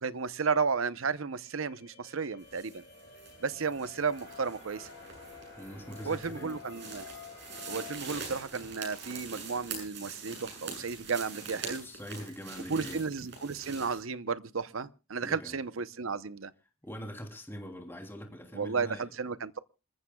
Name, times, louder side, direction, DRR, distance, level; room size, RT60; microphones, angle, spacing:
voice 1, 0.0-2.8 3.4-4.9 6.1-7.1 7.7-11.9 12.7-16.5 18.5-19.6, right 5 dB, 75° right, 0.8 m, -33 dB
sound 1, 0.9-8.0, left 6 dB, 50° left, 3.8 m, -51 dB
sound 2, 2.4-14.0, right 4 dB, 55° right, 7.8 m, -44 dB
sound 3, 4.1-9.2, right 1 dB, 30° right, 6.7 m, -55 dB
voice 2, 5.6-6.6 11.8-13.0 15.2-15.6 16.8-19.0, equal, 10° left, 3.0 m, -43 dB
27.5 x 14.5 x 2.3 m
head